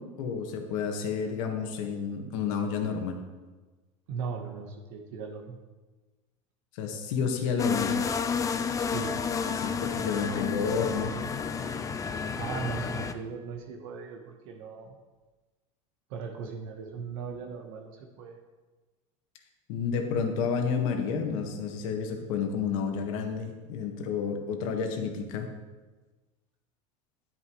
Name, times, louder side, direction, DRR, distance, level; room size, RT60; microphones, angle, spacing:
voice 1, 0.2-3.2 6.7-8.0 9.5-11.1 19.7-25.5, left 6 dB, 70° left, 4 dB, 1.6 m, -30 dB
voice 2, 4.1-5.6 8.8-9.2 9.9-10.7 12.4-15.0 16.1-18.4, right 5 dB, 70° right, 3 dB, 1.1 m, -38 dB
sound 1, 7.6-13.1, left 6 dB, 20° left, 0.5 m, -31 dB
10.5 x 10.0 x 3.1 m, 1.3 s
supercardioid pair, 130°, 17 cm